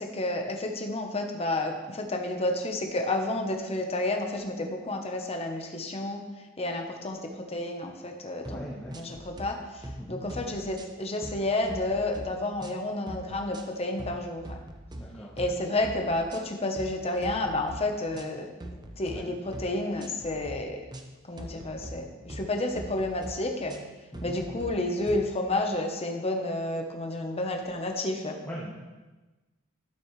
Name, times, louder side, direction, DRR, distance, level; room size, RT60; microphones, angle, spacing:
voice 1, 0.0-6.2 6.6-8.7 8.9-14.6 15.4-18.5 19.0-20.8 21.3-23.7 24.2-28.4, left 2 dB, 30° left, 3 dB, 0.9 m, -30 dB
voice 2, 8.4-9.0 10.0-10.2 14.9-15.4 19.1-19.3 21.4-22.3 24.1-24.4 28.4-28.7, equal, 10° left, -7 dB, 1.2 m, -41 dB
sound 1, 8.5-8.6 8.9-9.5 9.8-10.0 10.3-11.4 11.7-12.3 12.6-12.8 13.1-13.6 14.0-14.2 14.4-15.0 15.4-15.6 15.8-16.4 16.8-16.9 17.2-17.8 18.1-19.2 19.5-19.7 20.0-20.6 20.9-21.1 21.4-22.0 22.3-22.5 22.8-23.3 23.7-23.9 24.1-24.7 25.1-25.2, right 1 dB, 20° right, 0.7 m, -41 dB
12.5 x 6.1 x 3.2 m, 1.2 s
head